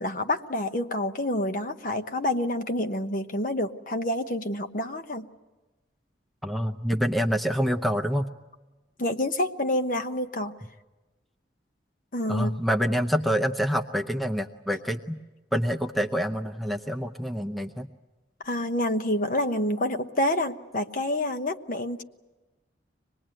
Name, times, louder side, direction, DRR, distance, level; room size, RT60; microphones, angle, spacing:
voice 1, 0.0-5.3 9.0-10.5 12.1-12.5 18.4-22.0, left 1 dB, 45° left, 8 dB, 1.0 m, -28 dB
voice 2, 6.4-8.3 12.3-15.2 15.5-17.9, equal, ahead, 4 dB, 0.7 m, -26 dB
24.5 x 20.0 x 9.0 m, 1.2 s
head